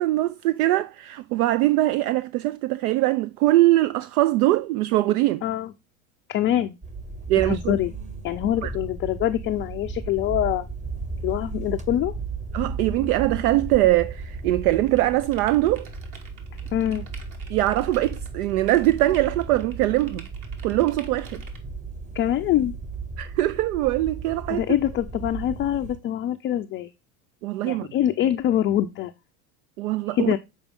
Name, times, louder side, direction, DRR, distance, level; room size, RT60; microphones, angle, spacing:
voice 1, 0.0-5.4 7.3-7.8 8.6-8.7 12.5-15.9 17.5-20.2 20.6-21.4 23.2-24.6 27.4-27.9 29.8-30.3, right 16 dB, 70° right, 0.5 m, -22 dB
voice 2, 5.4-5.7 6.3-6.8 7.4-7.9 8.2-10.7 11.2-12.1 16.7-17.1 22.1-22.7 24.5-26.9 27.6-29.1 30.1-30.4, left 12 dB, 25° left, 0.4 m, -24 dB
Passengers sleeping in night train. Moscow - St.Petersburg, 6.8-26.0, right 4 dB, 15° right, 1.1 m, -35 dB
sound 1, 14.7-21.6, right 5 dB, 45° right, 2.0 m, -48 dB
7.1 x 4.6 x 3.4 m
hypercardioid pair, 95°, 47 cm